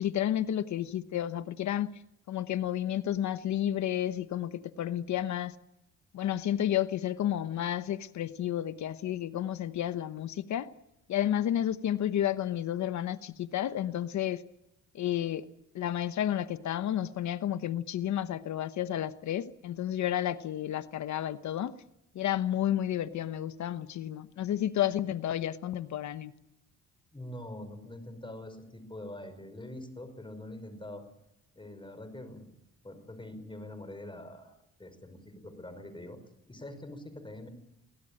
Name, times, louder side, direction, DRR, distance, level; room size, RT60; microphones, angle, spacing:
voice 1, 0.0-1.9 2.3-5.5 6.1-10.7 11.1-14.4 14.9-15.4 15.7-21.7 22.1-26.3, left 11 dB, 70° left, 12 dB, 1.0 m, -31 dB
voice 2, 27.1-31.0 31.6-32.5 32.8-34.5 34.8-36.2 36.5-37.5, left 1 dB, 15° left, 9 dB, 5.3 m, -44 dB
23.5 x 18.0 x 8.7 m, 0.81 s
cardioid pair, 90°, 30 cm